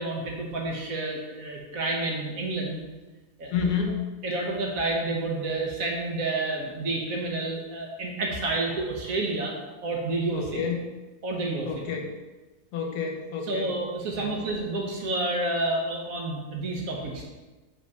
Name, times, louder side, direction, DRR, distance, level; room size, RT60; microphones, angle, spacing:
voice 1, 0.0-2.8 3.4-3.5 4.2-9.6 9.8-10.6 11.2-11.9 13.5-17.2, right 2 dB, 60° right, 0 dB, 1.3 m, -29 dB
voice 2, 3.5-4.0 10.3-10.8 11.6-12.1 12.7-13.7 14.1-14.3, left 6 dB, 75° left, 2 dB, 1.3 m, -29 dB
5.3 x 3.5 x 5.3 m, 1.2 s
omnidirectional pair, 1.7 m